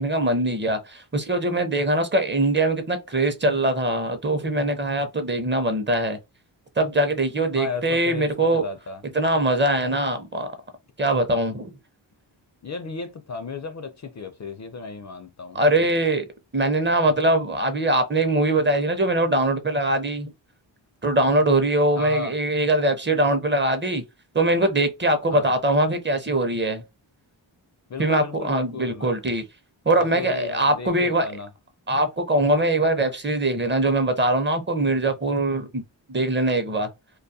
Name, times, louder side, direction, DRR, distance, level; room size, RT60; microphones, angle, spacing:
voice 1, 0.0-6.2 6.8-8.6 9.1-10.5 11.0-11.7 15.5-16.3 16.5-20.3 21.0-24.0 24.3-26.8 28.0-29.4 29.9-31.3 31.9-35.8 36.1-36.9, right 1 dB, 25° right, 0.6 m, -22 dB
voice 2, 7.5-9.0 12.6-16.1 22.0-22.4 25.3-25.5 27.9-29.2 30.0-31.5, left 4 dB, 40° left, 0.4 m, -35 dB
2.3 x 2.2 x 2.6 m
cardioid pair, 50°, 47 cm